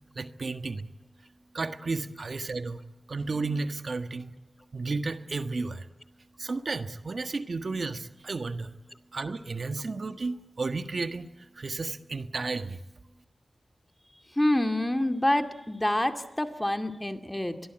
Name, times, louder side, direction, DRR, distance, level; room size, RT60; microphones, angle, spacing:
voice 1, 0.1-0.9 1.5-2.8 3.1-4.3 4.7-5.9 6.4-8.7 9.1-11.3 11.6-12.8, right 3 dB, 60° right, 9 dB, 1.5 m, -33 dB
voice 2, 14.1-17.6, left 1 dB, 15° left, 7 dB, 2.3 m, -27 dB
25.0 x 23.0 x 9.1 m, 1.0 s
wide cardioid pair, 65°, 0 cm